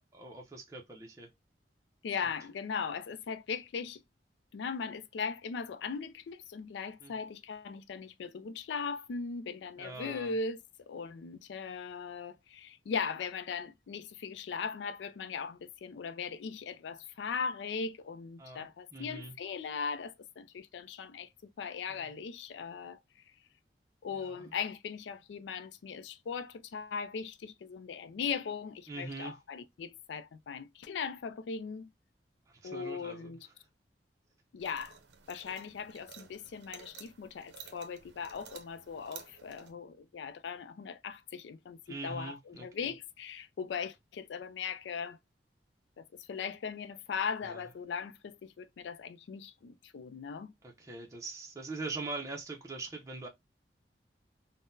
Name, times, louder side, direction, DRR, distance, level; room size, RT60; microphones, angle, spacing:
voice 1, 0.1-1.3 7.0-7.2 9.8-10.4 18.4-19.3 21.9-22.1 24.1-24.5 28.9-29.3 32.5-33.4 41.9-42.9 47.4-47.6 50.6-53.3, right 3 dB, 20° right, 0.5 m, -43 dB
voice 2, 2.0-4.0 4.5-23.0 24.0-31.9 32.6-33.5 34.5-35.0 35.3-45.2 46.0-50.5, left 5 dB, 85° left, 0.3 m, -39 dB
sound 1, 34.6-39.7, right 7 dB, 80° right, 0.6 m, -53 dB
3.7 x 2.0 x 2.6 m
head